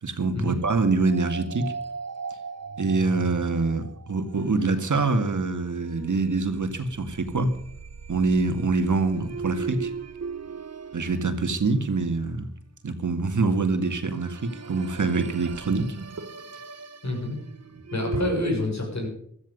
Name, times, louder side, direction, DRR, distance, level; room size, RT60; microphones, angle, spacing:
voice 1, 0.0-1.7 2.8-7.5 8.1-9.9 10.9-12.5 12.8-16.0, right 3 dB, 80° right, 7 dB, 2.1 m, -25 dB
sound 1, 1.0-12.2 13.7-18.5, right 5 dB, 55° right, 1.0 m, -38 dB
voice 2, 17.0-17.4 17.9-19.1, left 2 dB, 65° left, 1 dB, 6.6 m, -27 dB
16.0 x 13.5 x 5.4 m, 0.69 s
wide cardioid pair, 85°, 30 cm